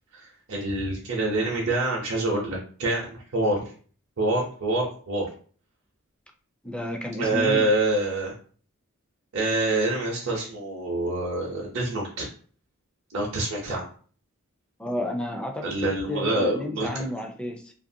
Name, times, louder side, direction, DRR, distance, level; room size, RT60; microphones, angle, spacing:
voice 1, 0.1-3.6 4.2-5.3 7.2-8.3 9.3-12.3 13.1-13.8 15.6-17.0, right 2 dB, 60° right, -3 dB, 0.7 m, -26 dB
voice 2, 6.6-7.7 14.8-17.7, left 1 dB, 5° left, 3 dB, 0.4 m, -32 dB
2.8 x 2.5 x 2.6 m, 0.43 s
head